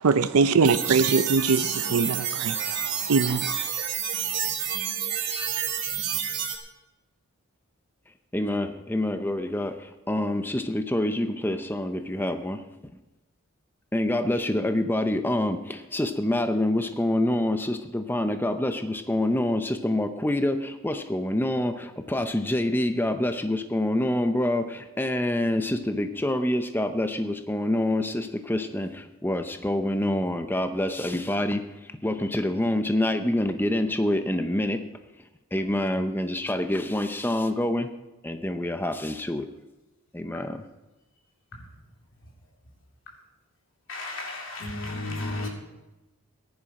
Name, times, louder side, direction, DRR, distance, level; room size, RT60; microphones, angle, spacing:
voice 1, 0.0-3.7, right 4 dB, 85° right, 0.6 m, -23 dB
sound 1, 0.6-6.6, right 8 dB, 50° right, 1.5 m, -29 dB
voice 2, 8.3-12.9 13.9-34.8 35.2-37.9 38.2-39.5 40.1-40.6, left 1 dB, 10° left, 0.6 m, -26 dB
voice 3, 43.9-45.5, left 2 dB, 60° left, 3.1 m, -33 dB
15.0 x 10.5 x 4.9 m
head